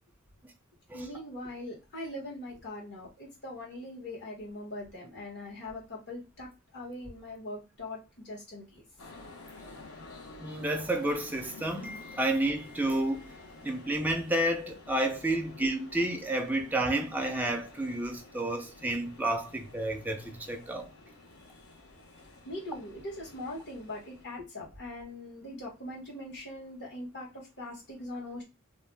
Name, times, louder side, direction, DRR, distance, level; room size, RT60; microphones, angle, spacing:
voice 1, 0.9-8.8 22.4-28.4, left 1 dB, 55° left, 1.3 m, -41 dB
sound 1, 9.0-24.3, left 2 dB, 75° left, 0.8 m, -51 dB
voice 2, 10.4-13.3 13.6-20.9, right 1 dB, 10° right, 0.4 m, -30 dB
2.6 x 2.1 x 3.2 m
head